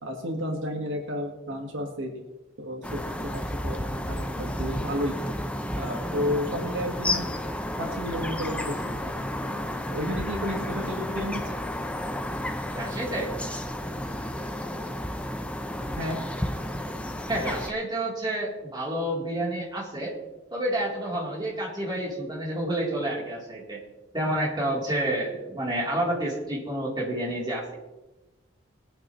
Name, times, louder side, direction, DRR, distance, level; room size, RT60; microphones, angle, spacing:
voice 1, 0.0-2.2 2.6-5.1 5.7-7.3 7.8-11.4 16.0-16.2, equal, 80° right, 2 dB, 1.8 m, -32 dB
sound 1, 2.8-17.7, left 1 dB, 5° left, 0.6 m, -32 dB
voice 2, 12.7-13.3 17.3-20.2 20.5-23.8 24.1-27.7, right 1 dB, 20° right, -4 dB, 3.6 m, -29 dB
21.5 x 9.0 x 3.2 m, 1.1 s
head